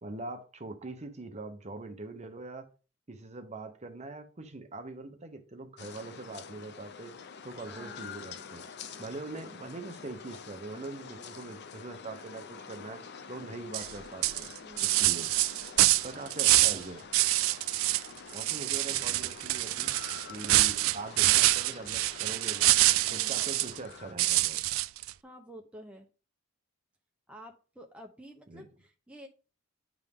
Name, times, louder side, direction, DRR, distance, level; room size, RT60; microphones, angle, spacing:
voice 1, 0.0-2.7 3.1-7.2 7.4-8.6 9.0-13.0 13.3-14.5 14.8-15.3 16.0-17.0 18.3-19.9 20.3-22.8 23.1-24.6 28.5-28.7, right 2 dB, 35° right, 0.9 m, -42 dB
sound 1, 5.8-24.1, left 6 dB, 55° left, 0.6 m, -47 dB
voice 2, 7.7-8.1 14.6-15.3 23.1-23.4 25.2-26.1 27.3-29.3, equal, 5° right, 0.7 m, -50 dB
sound 2, 13.7-13.9 14.2-16.8 17.1-18.1 18.3-23.8 24.2-25.1, right 17 dB, 80° right, 0.3 m, -26 dB
9.6 x 3.6 x 3.6 m
head